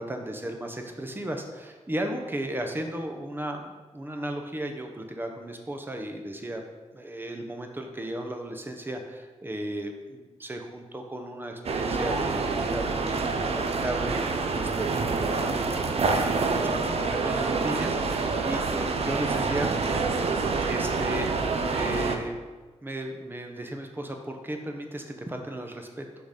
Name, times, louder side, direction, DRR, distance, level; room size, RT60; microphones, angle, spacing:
voice 1, 0.0-6.6 6.9-15.8 16.6-19.7 20.6-22.4 22.8-26.0, right 1 dB, 15° right, 4 dB, 0.8 m, -35 dB
sound 1, 11.6-22.2, right 4 dB, 55° right, 0.6 m, -27 dB
5.7 x 4.1 x 5.1 m, 1.3 s
wide cardioid pair, 100°, 12 cm